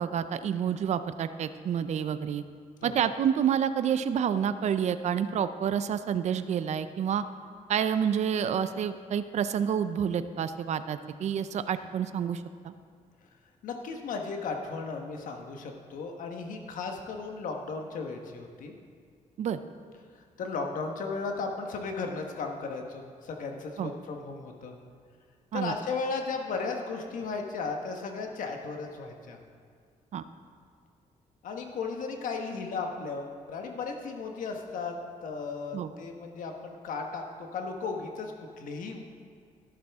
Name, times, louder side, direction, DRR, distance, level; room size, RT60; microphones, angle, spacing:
voice 1, 0.0-2.4 2.8-7.2 7.7-12.7 19.4-19.6 23.8-23.9 25.5-25.7 30.1-30.2 35.7-35.9, right 8 dB, 55° right, 11 dB, 0.5 m, -29 dB
voice 2, 13.6-18.7 20.1-24.7 25.5-29.4 31.4-34.9 35.2-37.2 37.5-39.0, left 4 dB, 75° left, 3 dB, 1.3 m, -35 dB
12.5 x 11.5 x 3.6 m, 2.1 s
cardioid pair, 105°, 14 cm